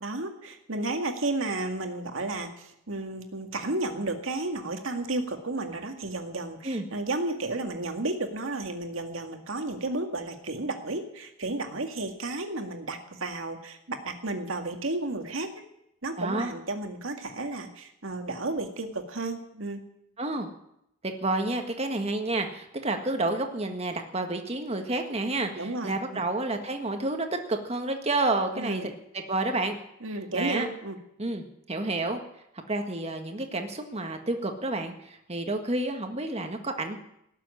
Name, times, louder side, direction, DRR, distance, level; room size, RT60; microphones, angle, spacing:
voice 1, 0.0-15.5 16.0-19.8 25.6-26.2 28.6-28.9 30.0-31.0, right 2 dB, 70° right, 5 dB, 2.1 m, -32 dB
voice 2, 16.2-16.5 20.2-20.5 21.0-29.8 30.3-30.7 31.2-32.2 32.7-37.0, right 2 dB, 30° right, 5 dB, 1.7 m, -30 dB
18.5 x 7.5 x 9.9 m, 0.79 s
head